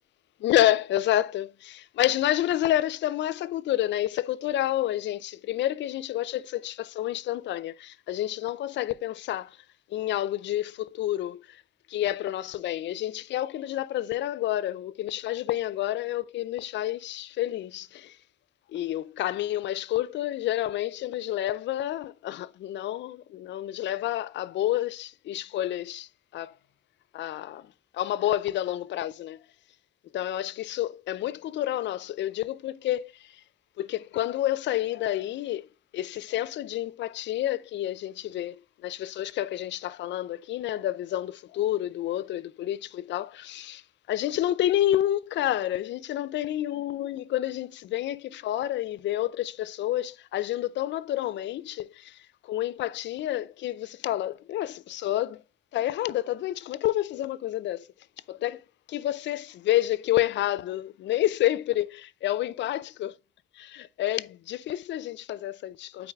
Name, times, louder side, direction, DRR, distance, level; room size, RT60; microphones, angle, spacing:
voice 1, 0.4-9.6 9.9-11.6 11.9-18.2 18.7-26.5 27.1-27.7 27.9-29.4 30.1-33.3 33.8-35.7 35.9-38.6 38.8-43.8 44.1-52.2 52.4-55.4 55.7-57.9 58.3-63.1 63.6-66.1, left 13 dB, 65° left, 0.4 m, -29 dB
8.4 x 4.8 x 2.3 m
cardioid pair, 90°, 20 cm